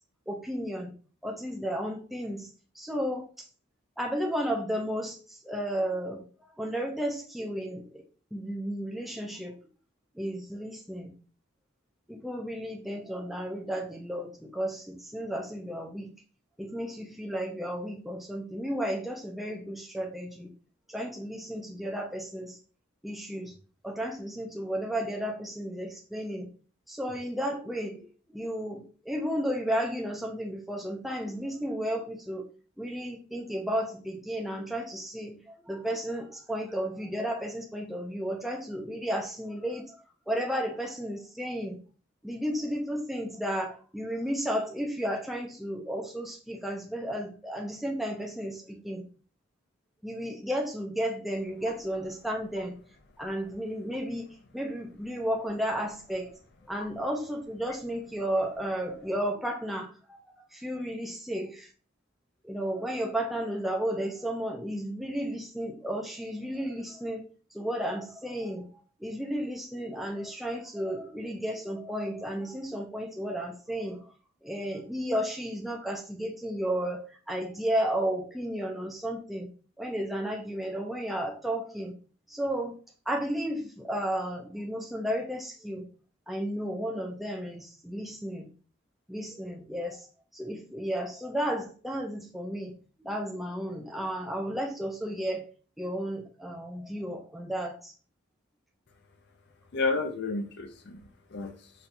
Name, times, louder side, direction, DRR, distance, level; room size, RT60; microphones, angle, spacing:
voice 1, 0.3-0.9 1.2-3.3 4.0-6.3 6.6-8.0 8.3-9.6 10.2-11.2 12.1-16.2 16.6-20.5 20.9-22.6 23.0-23.5 23.8-26.5 26.9-28.0 28.3-32.5 32.8-41.8 42.2-49.0 50.0-52.8 53.2-54.3 54.5-56.3 56.7-60.2 60.5-61.7 62.4-67.2 67.5-68.7 69.0-74.1 74.4-79.5 79.8-81.9 82.3-82.8 83.1-85.9 86.3-88.5 89.1-90.1 90.3-95.5 95.8-97.9, equal, ahead, 0 dB, 0.4 m, -33 dB
voice 2, 99.7-101.7, left 3 dB, 55° left, 5 dB, 0.5 m, -31 dB
4.1 x 2.3 x 2.6 m, 0.37 s
head